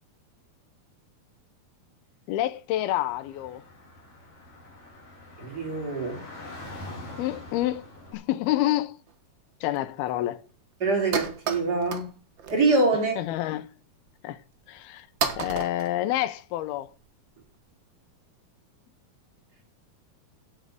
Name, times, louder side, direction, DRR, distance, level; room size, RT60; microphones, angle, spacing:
voice 1, 2.3-3.6 7.2-7.9 8.1-9.0 9.6-10.4 13.2-13.7 14.2-14.4 14.7-15.1 15.4-16.9, left 14 dB, 85° left, 2.8 m, -28 dB
Car / Traffic noise roadway noise, 3.1-8.1, left 2 dB, 40° left, 4.5 m, -44 dB
voice 2, 5.4-6.2 10.8-12.1 12.5-13.2, right 3 dB, 25° right, 3.9 m, -24 dB
sound 1, 9.1-9.2 9.8-9.9 10.1-10.2 10.5-10.6 10.9-12.1 12.4-12.8 13.2-13.4 14.1-14.2 14.8-14.9 15.2-16.7, right 7 dB, 80° right, 1.0 m, -32 dB
9.0 x 8.7 x 8.0 m
omnidirectional pair, 4.3 m